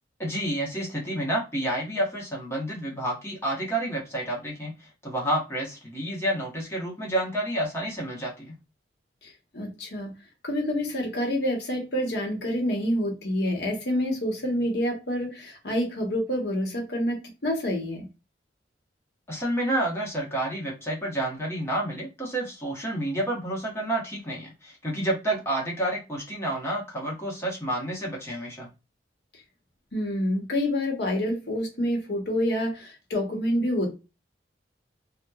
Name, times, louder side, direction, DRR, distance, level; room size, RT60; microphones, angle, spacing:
voice 1, 0.2-8.5 19.3-28.7, right 1 dB, 15° left, 0.9 m, -29 dB
voice 2, 9.2-10.1 10.4-17.2 17.4-18.1 29.9-33.9, equal, 65° left, 0.9 m, -27 dB
2.8 x 2.1 x 2.2 m
head